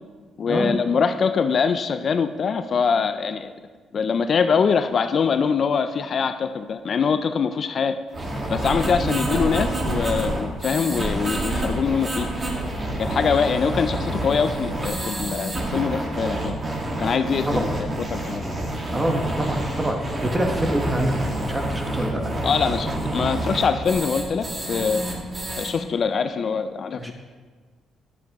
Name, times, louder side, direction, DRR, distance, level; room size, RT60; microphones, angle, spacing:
voice 1, 0.4-3.5 3.9-8.0 8.5-12.3 12.9-16.5 17.0-18.4 22.4-25.0 25.6-27.1, left 6 dB, 50° left, 10 dB, 0.3 m, -23 dB
sound 1, 8.1-25.7, right 1 dB, 35° right, 1.6 m, -28 dB
voice 2, 18.9-22.2 27.0-27.1, right 1 dB, 15° right, 3 dB, 1.2 m, -25 dB
10.5 x 7.7 x 3.0 m, 1.5 s
cardioid pair, 90°, 0 cm